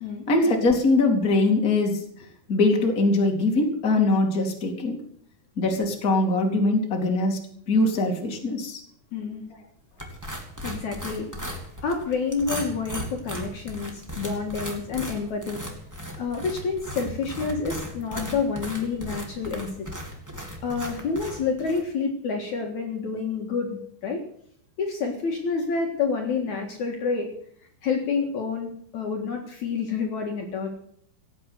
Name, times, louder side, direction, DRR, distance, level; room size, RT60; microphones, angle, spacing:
voice 1, 0.3-2.0 2.5-4.9 5.6-7.4 7.7-8.8, left 2 dB, 25° left, 1 dB, 2.5 m, -22 dB
voice 2, 9.1-9.4 10.6-11.3 11.8-15.6 16.2-19.9 20.6-24.2 24.8-27.3 27.8-30.7, left 5 dB, 55° left, 1 dB, 2.8 m, -28 dB
sound 1, 10.0-21.8, equal, 5° right, 1.5 m, -37 dB
17.0 x 8.6 x 7.8 m, 0.64 s
omnidirectional pair, 4.4 m